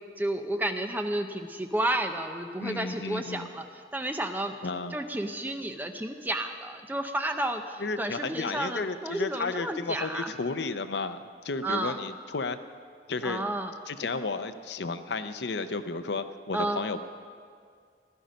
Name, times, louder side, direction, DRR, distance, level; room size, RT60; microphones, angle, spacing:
voice 1, 0.2-4.6 4.9-10.3 11.6-12.0 13.2-13.7 16.5-16.8, right 1 dB, 10° right, 6 dB, 0.6 m, -31 dB
voice 2, 2.6-3.5 4.6-4.9 7.8-11.2 11.4-12.6 13.1-13.4 13.9-17.0, left 3 dB, 75° left, 10 dB, 0.6 m, -33 dB
16.5 x 12.0 x 5.2 m, 2.1 s
head